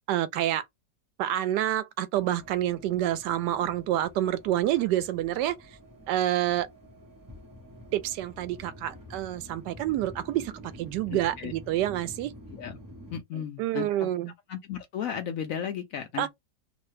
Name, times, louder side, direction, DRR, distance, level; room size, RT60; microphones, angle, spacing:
voice 1, 0.1-0.7 1.2-5.6 6.1-6.7 7.9-10.5 10.8-12.3 13.3-14.3 16.2-16.3, right 13 dB, 80° right, 1.2 m, -28 dB
sound 1, 2.1-13.2, equal, 20° right, 0.6 m, -48 dB
voice 2, 11.1-11.5 12.5-12.8 13.1-14.1 14.5-16.3, left 9 dB, 70° left, 0.8 m, -35 dB
3.1 x 2.1 x 3.2 m
omnidirectional pair, 1.8 m